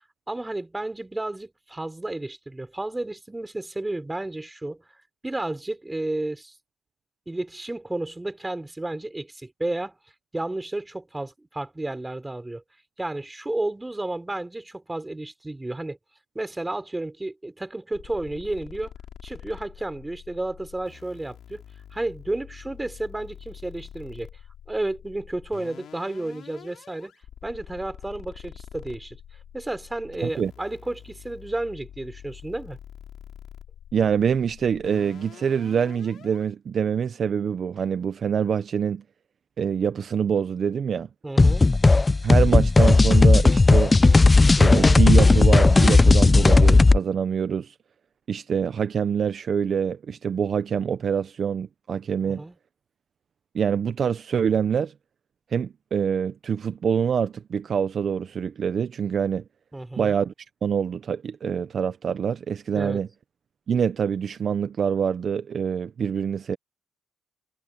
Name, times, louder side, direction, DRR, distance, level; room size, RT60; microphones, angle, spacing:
voice 1, 0.3-4.8 5.2-6.5 7.3-9.9 10.3-12.6 13.0-16.0 16.3-18.9 19.2-21.6 21.9-24.3 24.7-27.1 27.4-29.2 29.5-32.8 41.2-41.7 52.2-52.5 59.7-60.1 62.7-63.0, right 2 dB, 15° right, 4.5 m, -32 dB
sound 1, 17.9-36.5, left 9 dB, 65° left, 4.3 m, -46 dB
voice 2, 33.9-39.0 39.6-41.1 42.2-43.9 44.6-47.7 48.3-52.4 53.5-54.9 55.5-59.4 60.0-60.3 60.6-63.1 63.7-66.6, right 7 dB, 50° right, 0.8 m, -25 dB
sound 2, 41.4-47.0, left 3 dB, 20° left, 0.4 m, -15 dB
cardioid pair, 90°, 0 cm